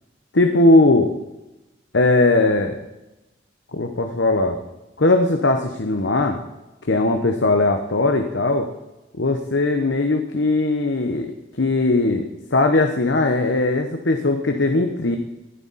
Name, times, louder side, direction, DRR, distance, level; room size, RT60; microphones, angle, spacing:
voice 1, 0.3-1.1 1.9-2.8 3.7-4.6 5.0-6.4 6.8-8.7 9.1-11.3 11.6-15.2, left 2 dB, 75° left, 5 dB, 1.0 m, -19 dB
19.0 x 11.5 x 4.2 m, 1.0 s
head